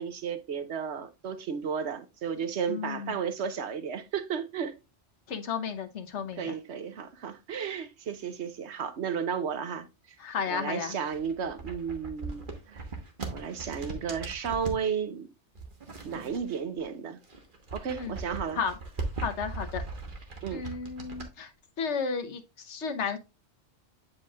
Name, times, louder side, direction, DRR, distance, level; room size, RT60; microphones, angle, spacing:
voice 1, 0.0-4.7 6.4-9.9 10.5-12.8 13.3-15.3 16.0-17.2 17.7-18.6 20.4-20.7, right 7 dB, 75° right, 1.1 m, -33 dB
voice 2, 2.7-3.2 5.3-6.6 10.2-11.0 18.0-18.2 18.5-18.7 19.2-19.8 20.5-21.5 21.8-23.2, left 6 dB, 80° left, 1.3 m, -33 dB
sound 1, 11.0-14.8 15.5-16.9 17.2-21.3, right 3 dB, 45° right, 1.4 m, -39 dB
8.4 x 5.2 x 2.3 m
omnidirectional pair, 1.2 m